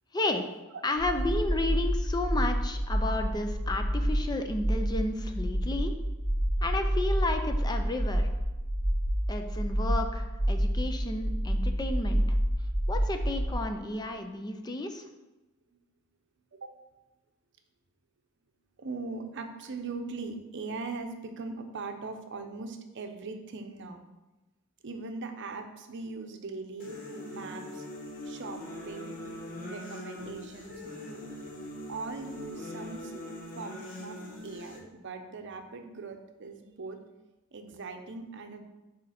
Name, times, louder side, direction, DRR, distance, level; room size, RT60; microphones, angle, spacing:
voice 1, 0.1-0.5 0.8-5.9 6.6-8.3 9.3-12.4 12.9-15.0, left 2 dB, 20° left, 6 dB, 0.4 m, -32 dB
sound 1, 1.0-13.5, equal, 90° left, 2.4 m, -29 dB
voice 2, 18.8-24.0 24.8-26.9 27.3-27.9 28.2-29.2 29.7-30.8 31.9-33.2 33.6-37.0 37.5-38.6, right 3 dB, 60° right, 5 dB, 0.7 m, -40 dB
sound 2, 26.8-34.8, left 1 dB, 40° left, 1.0 m, -42 dB
5.0 x 4.3 x 5.7 m, 1.1 s
head